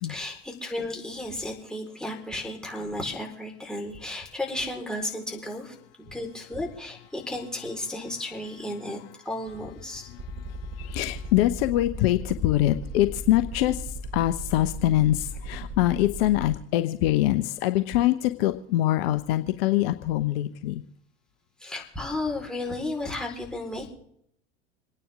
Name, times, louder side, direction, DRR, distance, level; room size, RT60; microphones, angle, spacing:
voice 1, 0.1-5.7 6.1-9.0 9.2-10.1 21.6-23.9, left 1 dB, ahead, -1 dB, 4.5 m, -33 dB
voice 2, 10.1-20.8, left 15 dB, 60° left, 9 dB, 0.9 m, -24 dB
sound 1, 10.1-16.5, right 5 dB, 35° right, 3.6 m, -37 dB
27.5 x 9.7 x 3.7 m, 0.68 s
figure-of-eight pair, 75°, 34 cm